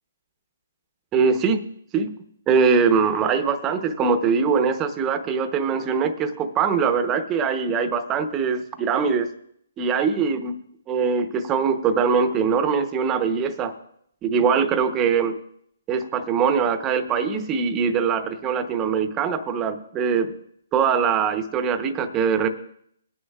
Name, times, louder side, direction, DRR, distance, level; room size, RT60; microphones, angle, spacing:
voice 1, 1.1-1.6 1.9-2.1 2.5-9.3 9.8-10.5 10.9-13.7 14.2-15.3 15.9-20.3 20.7-22.5, right 6 dB, 20° right, 8 dB, 0.8 m, -22 dB
21.5 x 9.7 x 2.4 m, 0.69 s
hypercardioid pair, 145°, 0 cm